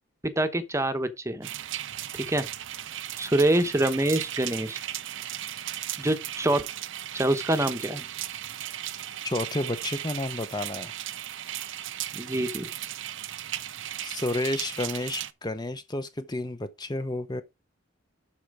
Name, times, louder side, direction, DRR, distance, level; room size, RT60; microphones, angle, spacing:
voice 1, 0.2-1.5 2.1-2.5 3.2-4.8 6.0-6.6 7.1-8.1 12.1-12.7, right 1 dB, 15° right, 0.9 m, -25 dB
sound 1, 1.4-15.3, right 12 dB, 65° right, 0.6 m, -36 dB
voice 2, 9.2-10.9 14.0-17.4, left 2 dB, 20° left, 0.7 m, -31 dB
12.0 x 4.4 x 4.9 m
head